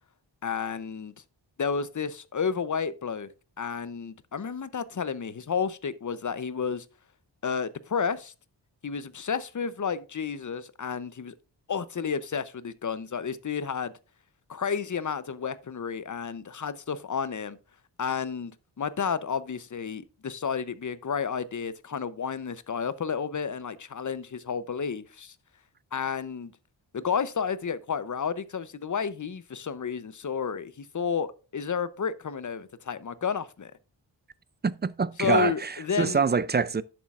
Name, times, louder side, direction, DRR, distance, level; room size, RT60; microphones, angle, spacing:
voice 1, 0.4-1.1 1.6-3.3 3.6-6.9 7.4-8.3 8.8-11.3 11.7-13.9 14.5-17.6 18.0-18.5 18.8-25.3 25.9-26.5 26.9-33.7 35.2-36.2, left 6 dB, 45° left, 0.7 m, -31 dB
voice 2, 34.6-35.7 36.0-36.8, right 5 dB, 25° right, 0.3 m, -25 dB
10.5 x 7.2 x 2.4 m
wide cardioid pair, 95°, 44 cm